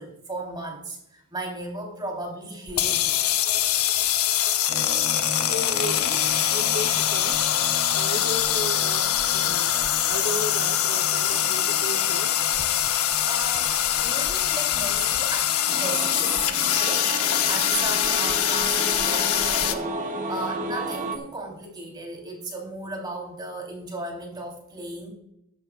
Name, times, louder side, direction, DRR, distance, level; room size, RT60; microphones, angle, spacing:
voice 1, 0.0-3.2 13.2-13.7 14.0-16.4 16.7-19.9 20.3-25.1, right 2 dB, 20° right, 0 dB, 3.5 m, -35 dB
sound 1, 2.7-19.7, left 11 dB, 90° left, 0.9 m, -23 dB
sound 2, 4.7-21.6, equal, 50° left, 3.2 m, -41 dB
voice 2, 5.5-6.2 6.5-7.4 7.9-9.8 10.1-12.3, right 1 dB, 60° right, 3 dB, 0.8 m, -34 dB
sound 3, 15.7-21.2, right 2 dB, 35° right, 1.2 m, -32 dB
14.5 x 11.5 x 2.4 m, 0.76 s
head